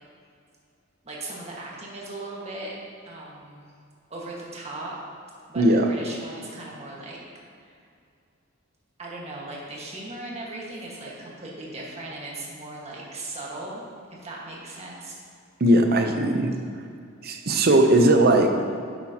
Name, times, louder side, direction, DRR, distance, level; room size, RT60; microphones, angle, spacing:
voice 1, 1.0-2.7 3.0-3.7 4.1-4.9 5.5-7.2 7.6-7.7 9.0-13.8 14.2-15.1, right 2 dB, 30° right, -4 dB, 1.6 m, -38 dB
voice 2, 5.6-5.9 15.6-16.5 17.2-18.5, right 1 dB, 50° right, 4 dB, 0.7 m, -18 dB
10.5 x 8.2 x 2.9 m, 2.4 s
head